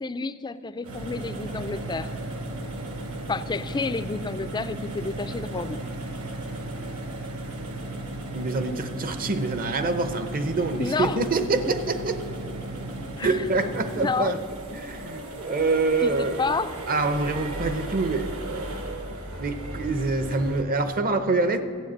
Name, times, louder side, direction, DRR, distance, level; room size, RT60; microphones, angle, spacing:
voice 1, 0.0-2.1 3.3-5.8 10.8-11.2 13.2-13.4 14.0-14.3 16.0-16.7, left 4 dB, 20° left, 12 dB, 0.4 m, -30 dB
sound 1, 0.8-20.6, right 1 dB, 70° right, 1.8 m, -35 dB
voice 2, 8.3-12.2 13.2-14.4 14.7-16.4 16.9-18.7 19.4-21.6, right 3 dB, 40° right, 10 dB, 0.8 m, -26 dB
12.5 x 8.1 x 8.6 m, 2.3 s
head